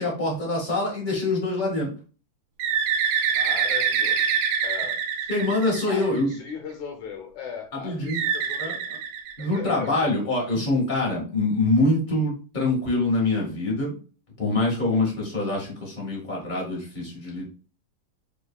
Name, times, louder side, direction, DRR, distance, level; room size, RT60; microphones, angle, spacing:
voice 1, 0.0-1.9 5.3-6.3 7.8-8.2 8.6-8.7 9.4-14.0 14.4-17.4, left 2 dB, 25° left, -3 dB, 1.1 m, -25 dB
Bird, 2.6-6.3 8.1-9.9, right 7 dB, 85° right, 1.5 m, -25 dB
voice 2, 3.3-5.3 5.9-8.8 9.4-10.3, left 6 dB, 70° left, 3 dB, 2.1 m, -38 dB
5.4 x 3.9 x 2.3 m, 0.37 s
omnidirectional pair, 3.7 m